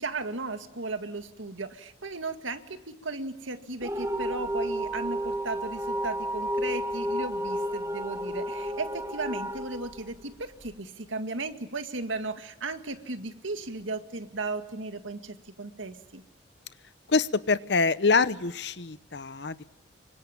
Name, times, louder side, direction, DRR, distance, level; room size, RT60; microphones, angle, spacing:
voice 1, 0.0-16.2, right 3 dB, 85° right, 8 dB, 2.0 m, -36 dB
sound 1, 3.8-10.7, equal, 15° right, 1.0 m, -32 dB
voice 2, 17.1-19.7, left 4 dB, 60° left, 16 dB, 0.9 m, -25 dB
26.0 x 24.5 x 7.4 m, 0.93 s
head